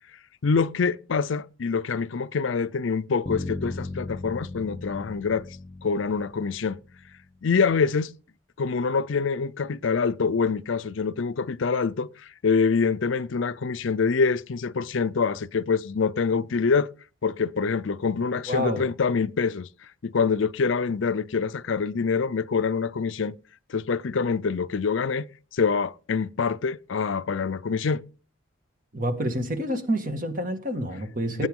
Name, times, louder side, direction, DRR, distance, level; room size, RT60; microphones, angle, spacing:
voice 1, 0.4-5.5 5.8-6.8 7.4-8.1 8.6-16.9 17.2-19.7 20.0-23.3 23.7-25.3 25.5-28.0 31.3-31.5, left 5 dB, 70° left, 0.5 m, -25 dB
Bass guitar, 3.3-7.3, left 2 dB, 25° left, 0.8 m, -37 dB
voice 2, 18.5-18.8 28.9-31.5, equal, 40° right, 2.0 m, -28 dB
19.0 x 9.6 x 3.7 m
head